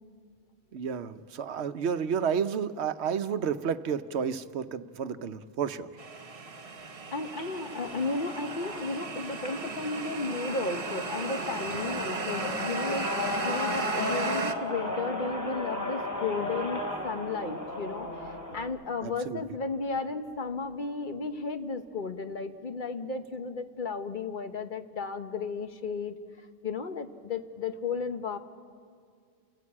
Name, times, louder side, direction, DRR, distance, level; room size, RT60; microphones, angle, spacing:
voice 1, 0.7-5.9 19.0-19.4, right 7 dB, 80° right, 12 dB, 1.0 m, -31 dB
sound 1, 6.0-14.5, right 4 dB, 35° right, 0.9 m, -36 dB
voice 2, 7.1-26.1 26.6-28.4, left 4 dB, 50° left, 8 dB, 1.2 m, -34 dB
sound 2, 7.2-18.6, left 1 dB, 15° left, 3.5 m, -35 dB
30.0 x 14.5 x 8.5 m, 2.2 s
omnidirectional pair, 1.1 m